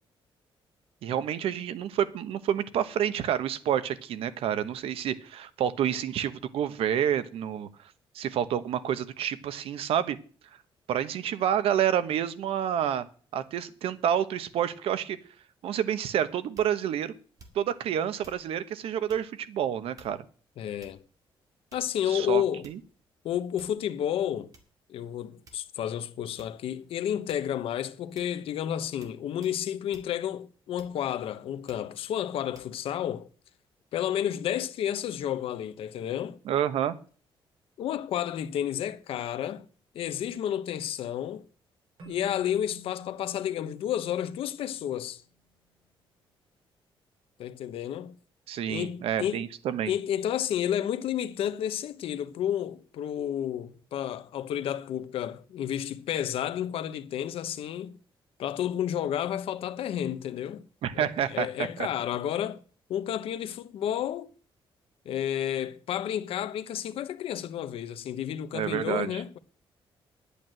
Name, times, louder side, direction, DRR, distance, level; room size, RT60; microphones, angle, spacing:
voice 1, 1.0-7.7 8.1-10.2 10.9-13.1 13.3-15.2 15.6-17.1 17.5-20.2 22.1-22.8 36.4-36.9 48.5-49.9 60.8-61.9 68.5-69.2, right 9 dB, 85° right, 1.0 m, -29 dB
sound 1, 16.5-16.9 17.4-17.8 18.2-18.5 19.1-19.3 20.0-20.3 20.8-21.2 21.7-22.0 22.6-23.0 23.6-23.9 24.5-24.7 25.5-25.9 26.4-26.6 27.3-27.6 28.2-28.4 29.0-29.2 29.4-29.6 29.9-30.1 30.8-31.2 31.7-31.9 32.5-32.7, right 3 dB, 40° right, 2.2 m, -55 dB
voice 2, 20.6-21.0 21.7-22.7 23.2-24.5 24.9-33.3 33.9-36.4 37.8-39.7 39.9-41.5 42.1-45.2 47.4-48.1 48.7-49.4 49.9-58.0 58.4-60.7 60.9-62.6 62.9-64.3 65.0-69.4, left 10 dB, 75° left, 1.0 m, -31 dB
Keyboard (musical), 42.0-45.2, left 1 dB, 65° right, 5.2 m, -53 dB
11.0 x 8.5 x 7.6 m
cardioid pair, 180°, 10 cm